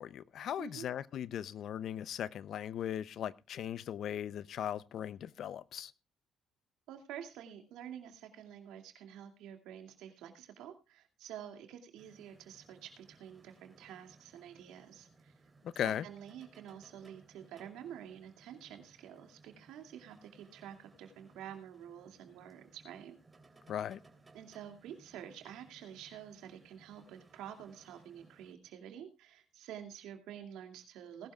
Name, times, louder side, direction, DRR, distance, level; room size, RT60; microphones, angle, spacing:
voice 1, 0.0-5.9 15.6-16.0 23.7-24.0, left 10 dB, 65° left, 0.6 m, -38 dB
voice 2, 6.9-15.3 15.8-23.2 24.3-31.3, right 9 dB, 85° right, 2.5 m, -49 dB
sound 1, 12.0-28.5, right 3 dB, 25° right, 3.2 m, -63 dB
19.5 x 12.0 x 2.4 m
cardioid pair, 85°, 0 cm